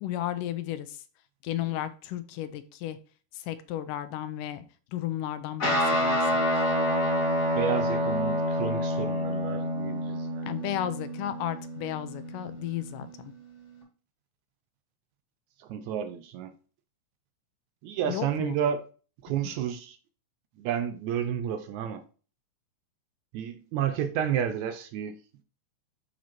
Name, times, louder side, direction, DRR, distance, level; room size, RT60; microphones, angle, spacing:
voice 1, 0.0-1.0 1.4-3.0 3.3-4.6 4.9-6.4 10.5-13.3 18.0-18.6, left 12 dB, 85° left, 2.3 m, -34 dB
Guitar, 5.6-13.2, equal, 35° left, 2.2 m, -28 dB
voice 2, 7.4-10.5 15.6-16.5 17.8-18.9 19.2-20.0 20.6-22.0 23.3-25.2, right 9 dB, 75° right, 1.8 m, -31 dB
7.5 x 4.2 x 4.4 m
omnidirectional pair, 3.7 m